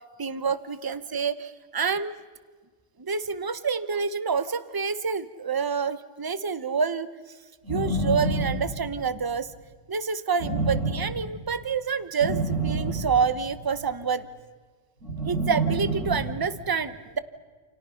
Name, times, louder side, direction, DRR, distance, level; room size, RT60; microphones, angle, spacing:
voice 1, 0.2-2.2 3.0-7.1 7.7-9.5 9.9-14.3 15.3-17.2, right 5 dB, 20° right, 13 dB, 0.8 m, -27 dB
sound 1, 7.6-9.2 10.4-11.4 12.2-13.7 15.0-16.6, right 2 dB, 65° right, 6.9 m, -28 dB
29.0 x 29.0 x 5.8 m, 1.4 s
omnidirectional pair, 1.4 m